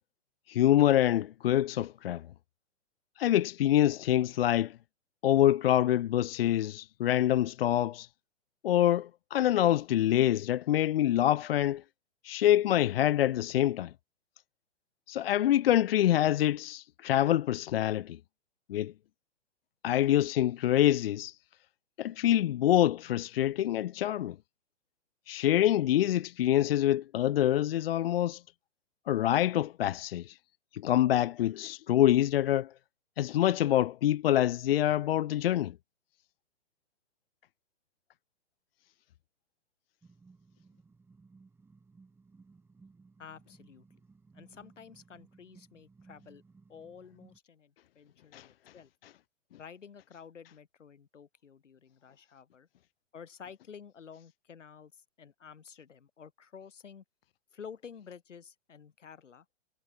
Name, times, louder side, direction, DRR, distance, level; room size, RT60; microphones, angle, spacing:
voice 1, 0.5-2.3 3.2-4.8 5.2-8.1 8.6-11.8 12.2-13.9 15.1-18.2 18.7-18.9 19.8-21.4 22.0-24.4 25.3-28.4 29.1-30.4 30.7-32.7 33.2-35.8 48.3-48.5, left 12 dB, 55° left, 0.4 m, -26 dB
sound 1, 40.0-47.4, right 4 dB, 5° right, 1.3 m, -59 dB
voice 2, 43.2-43.8 44.3-46.4 46.7-48.9 49.6-52.7 53.1-57.0 57.5-59.5, left 7 dB, 75° left, 4.0 m, -51 dB
figure-of-eight pair, 120°, 37 cm